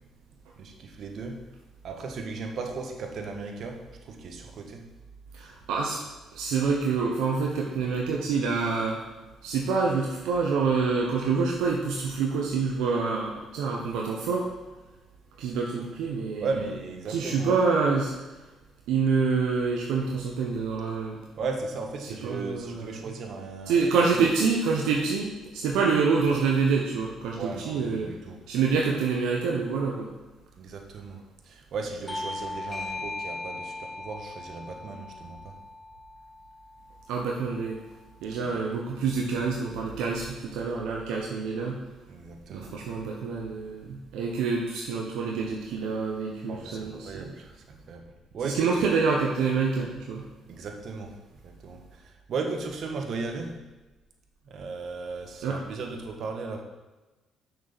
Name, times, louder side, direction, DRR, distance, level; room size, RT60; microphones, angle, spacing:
voice 1, 0.6-1.4 1.8-4.9 16.4-17.5 21.3-24.3 27.4-28.4 30.6-35.6 38.4-38.6 42.1-42.7 46.5-48.8 50.5-51.2 51.4-53.6 54.4-56.6, right 4 dB, 60° right, 3 dB, 1.5 m, -36 dB
voice 2, 5.3-6.0 6.3-9.0 9.4-14.5 15.4-16.5 17.1-18.4 18.9-21.2 22.2-23.0 23.7-28.1 28.5-30.1 37.1-37.8 38.2-41.8 42.5-47.4 48.4-50.2 55.4-55.6, right 5 dB, 80° right, -1 dB, 1.1 m, -27 dB
Bell / Doorbell, 32.1-37.2, left 2 dB, 15° left, 1.5 m, -38 dB
6.6 x 6.4 x 6.9 m, 1.1 s
supercardioid pair, 60°, 0 cm